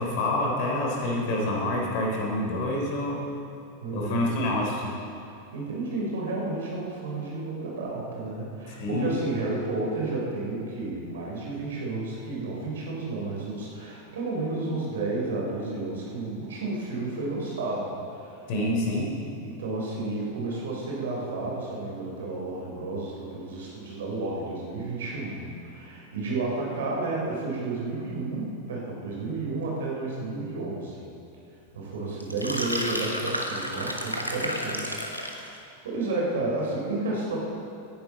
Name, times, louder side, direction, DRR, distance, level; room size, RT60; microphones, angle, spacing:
voice 1, 0.0-3.3 3.9-4.9 8.7-9.1 18.5-19.2, left 1 dB, 45° left, -1 dB, 3.3 m, -27 dB
voice 2, 3.8-4.3 5.5-18.5 19.4-31.1 31.7-37.4, right 2 dB, 60° right, -3 dB, 3.5 m, -32 dB
sound 1, 32.2-35.5, equal, 90° left, 1.1 m, -31 dB
18.5 x 10.5 x 4.1 m, 2.6 s
figure-of-eight pair, 90°, 0 cm